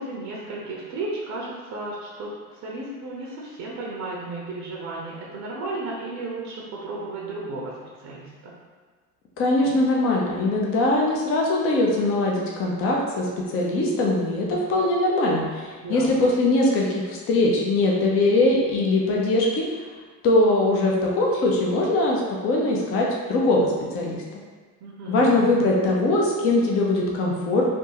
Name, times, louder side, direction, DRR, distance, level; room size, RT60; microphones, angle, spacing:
voice 1, 0.0-2.3 2.6-7.7 8.0-8.5 15.8-16.1 24.8-25.3, right 2 dB, 35° right, -4 dB, 0.7 m, -34 dB
voice 2, 9.4-19.7 20.2-24.2 25.1-27.6, left 2 dB, 30° left, -2 dB, 0.6 m, -21 dB
3.5 x 2.6 x 2.8 m, 1.4 s
figure-of-eight pair, 75°, 47 cm